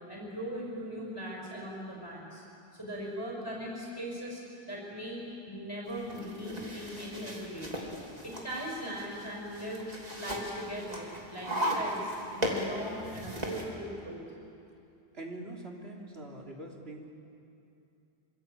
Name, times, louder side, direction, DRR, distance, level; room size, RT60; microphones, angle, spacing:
voice 1, 0.0-2.4 2.7-4.4 4.7-7.7 8.2-9.8 10.2-14.2, equal, 20° left, -2 dB, 6.0 m, -39 dB
sound 1, 5.9-13.6, equal, 40° right, 3.5 m, -37 dB
voice 2, 15.1-17.1, right 1 dB, 70° right, -1 dB, 3.4 m, -43 dB
26.0 x 26.0 x 8.4 m, 2.7 s
omnidirectional pair, 1.1 m